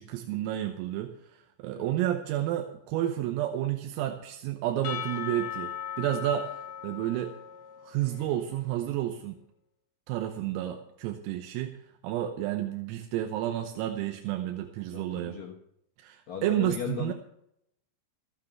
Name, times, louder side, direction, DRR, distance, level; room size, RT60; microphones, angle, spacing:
voice 1, 0.0-7.3 7.8-9.4 10.1-11.7 12.0-15.4 16.0-17.1, right 12 dB, 85° right, 4 dB, 3.7 m, -31 dB
voice 2, 1.8-2.1 14.9-15.6 16.3-17.1, left 9 dB, 70° left, -1 dB, 2.2 m, -37 dB
Percussion / Church bell, 4.8-8.5, left 10 dB, 90° left, 2.1 m, -38 dB
15.0 x 9.4 x 6.0 m, 0.74 s
omnidirectional pair, 6.0 m